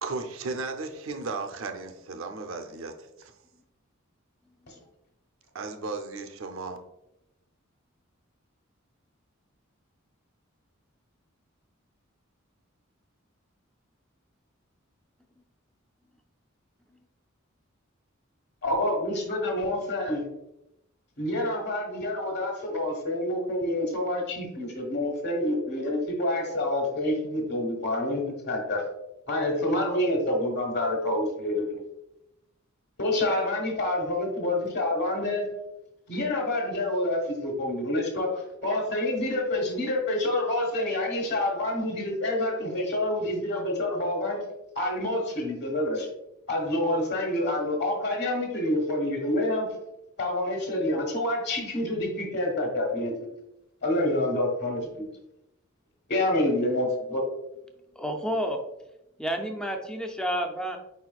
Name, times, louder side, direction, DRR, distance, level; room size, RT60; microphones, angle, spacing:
voice 1, 0.0-3.3 5.5-6.8, right 3 dB, 75° right, 6 dB, 0.6 m, -35 dB
voice 2, 18.6-20.2 21.2-28.8 29.3-31.8 33.0-35.5 36.1-44.4 44.7-46.1 46.5-49.7 50.2-53.1 53.8-55.0 56.1-57.2, left 1 dB, 55° left, 1 dB, 1.3 m, -27 dB
voice 3, 58.0-58.6 59.2-60.8, equal, 5° left, 4 dB, 0.4 m, -30 dB
4.9 x 4.2 x 2.3 m, 0.87 s
head